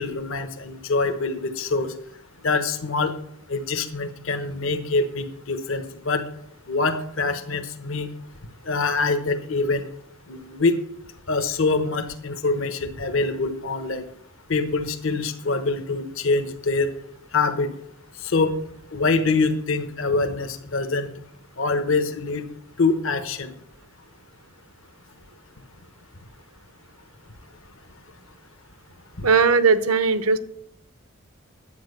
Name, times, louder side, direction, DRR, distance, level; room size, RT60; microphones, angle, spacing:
voice 1, 0.0-1.9 2.4-3.2 3.5-6.3 6.7-8.1 8.7-9.9 10.3-10.7 11.3-14.0 14.5-16.9 17.3-17.7 18.2-18.6 18.9-21.1 21.6-22.4 22.8-23.5 29.2-29.3, left 3 dB, 65° left, 8 dB, 1.1 m, -24 dB
voice 2, 29.2-30.4, right 5 dB, 85° right, 13 dB, 0.8 m, -18 dB
10.5 x 8.5 x 6.6 m, 0.72 s
head